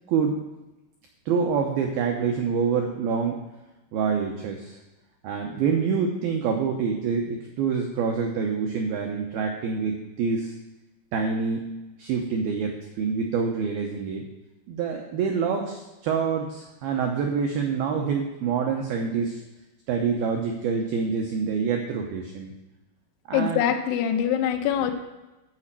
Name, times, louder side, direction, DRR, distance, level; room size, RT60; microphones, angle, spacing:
voice 1, 1.3-3.4 3.9-4.8 5.2-10.5 11.1-11.7 12.0-14.2 14.7-19.4 19.9-22.5 23.3-23.6, right 6 dB, 85° right, 2 dB, 2.1 m, -26 dB
voice 2, 23.3-24.9, left 9 dB, 75° left, 4 dB, 2.5 m, -24 dB
11.0 x 5.0 x 7.4 m, 1.0 s
omnidirectional pair, 5.5 m